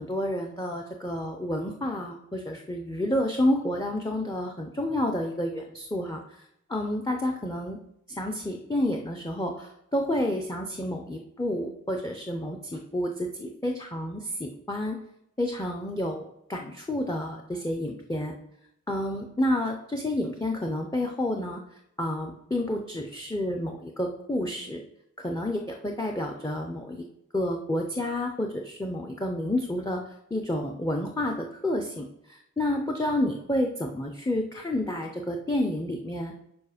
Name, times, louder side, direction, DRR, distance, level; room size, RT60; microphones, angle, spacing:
voice 1, 0.0-6.2 6.7-7.8 8.1-15.0 15.4-18.3 18.9-21.6 22.0-24.8 25.2-27.0 27.3-30.0 30.3-36.3, left 1 dB, 15° left, 2 dB, 0.5 m, -30 dB
7.0 x 4.9 x 5.0 m, 0.78 s
head